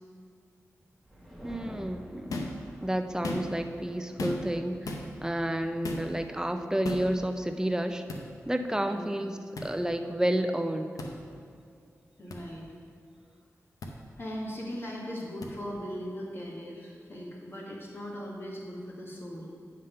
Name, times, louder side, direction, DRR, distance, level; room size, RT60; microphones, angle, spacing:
sound 1, 1.1-6.5, equal, 5° left, 1.5 m, -49 dB
voice 1, 1.4-2.5 2.8-8.0 8.5-11.0, right 1 dB, 10° right, 7 dB, 0.5 m, -30 dB
sound 2, 2.3-2.6 3.1-3.7 4.2-4.6 4.8-5.0 5.8-6.1 6.8-7.1 8.1-8.2 9.5-9.7 11.0-11.1 12.3-12.4 13.8-13.9 15.4-15.5, left 2 dB, 80° left, 0.7 m, -35 dB
voice 2, 8.8-9.2 12.2-12.7 14.2-19.5, equal, 40° left, -3 dB, 1.6 m, -39 dB
9.2 x 3.7 x 5.5 m, 2.3 s
cardioid pair, 50°, 6 cm